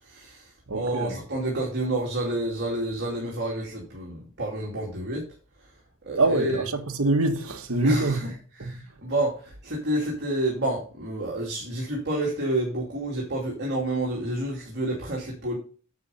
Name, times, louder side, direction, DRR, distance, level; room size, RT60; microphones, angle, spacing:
voice 1, 0.0-5.2 5.6-5.7 6.0-6.6 7.8-8.3 8.6-15.6, right 1 dB, 50° right, 2.5 m, -29 dB
voice 2, 0.7-1.2 6.2-8.3 8.6-9.0, right 2 dB, 65° right, 1.4 m, -25 dB
9.4 x 5.3 x 5.4 m
head